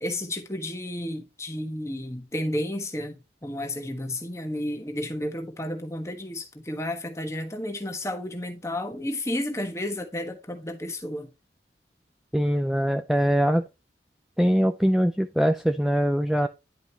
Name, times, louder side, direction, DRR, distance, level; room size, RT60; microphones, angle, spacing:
voice 1, 0.0-11.3, left 1 dB, 15° left, 1.3 m, -32 dB
voice 2, 12.3-13.7 14.4-16.5, equal, ahead, 0.5 m, -22 dB
10.5 x 5.1 x 2.9 m
head